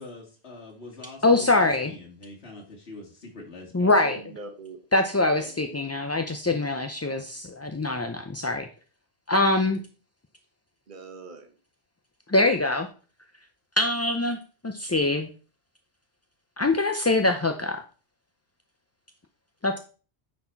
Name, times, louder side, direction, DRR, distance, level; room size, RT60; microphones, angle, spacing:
voice 1, 0.0-3.9, left 3 dB, 75° left, -1 dB, 2.0 m, -43 dB
voice 2, 1.2-1.9 3.7-4.2 4.9-8.7 9.3-9.8 12.3-12.9 13.8-14.4 14.6-15.3 16.6-17.8 19.6-19.8, left 2 dB, 25° left, 5 dB, 0.3 m, -23 dB
voice 3, 3.8-4.8 5.2-5.8 10.9-11.5, right 4 dB, 50° right, 5 dB, 1.2 m, -42 dB
9.5 x 4.3 x 4.5 m, 0.37 s
omnidirectional pair, 1.1 m